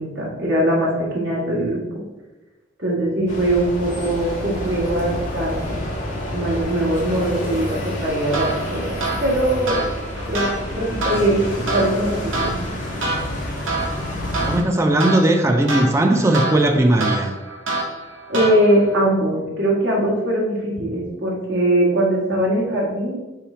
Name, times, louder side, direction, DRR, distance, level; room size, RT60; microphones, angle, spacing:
voice 1, 0.0-2.0 2.8-5.8 6.3-9.8 10.2-11.4 11.7-12.6 18.3-23.2, right 1 dB, 65° right, -4 dB, 1.5 m, -21 dB
sound 1, 3.3-14.6, left 1 dB, 40° left, 1.0 m, -28 dB
sound 2, 8.3-19.0, right 2 dB, 85° right, 0.9 m, -28 dB
voice 2, 14.5-17.3, right 1 dB, 15° right, 4 dB, 0.3 m, -17 dB
3.7 x 3.2 x 4.2 m, 1.1 s
head